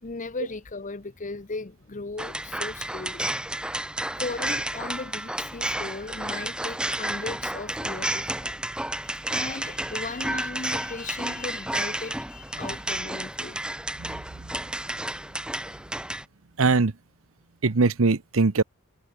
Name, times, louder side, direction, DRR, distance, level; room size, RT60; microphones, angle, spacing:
voice 1, 0.0-3.3 4.2-8.6 9.0-13.6 13.9-14.0, left 3 dB, 40° left, 1.0 m, -37 dB
sound 1, 2.2-16.2, right 1 dB, 5° right, 1.1 m, -31 dB
voice 2, 14.0-14.5 16.6-16.9 17.6-18.6, right 3 dB, 75° right, 0.9 m, -22 dB
head